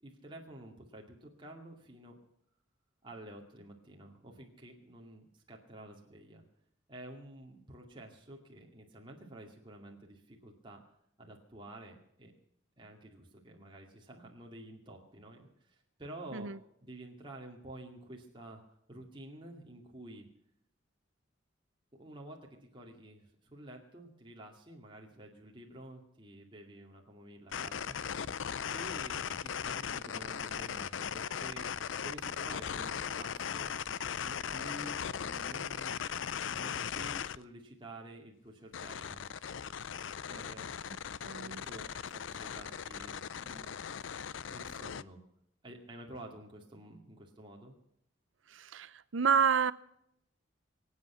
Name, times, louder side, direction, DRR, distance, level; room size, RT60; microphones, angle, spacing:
voice 1, 0.0-2.2 3.0-6.4 6.9-10.8 11.2-12.3 12.8-16.5 16.8-18.6 18.9-20.2 21.9-28.0 28.7-33.7 34.2-36.0 36.4-39.2 40.3-40.7 41.2-43.7 44.5-45.2 45.6-47.8, right 1 dB, 25° right, 2.3 m, -50 dB
sound 1, 27.5-37.4 38.7-45.0, left 8 dB, 75° left, 0.5 m, -38 dB
voice 2, 41.2-41.6 48.5-49.7, right 6 dB, 75° right, 0.6 m, -29 dB
25.0 x 8.5 x 5.7 m
head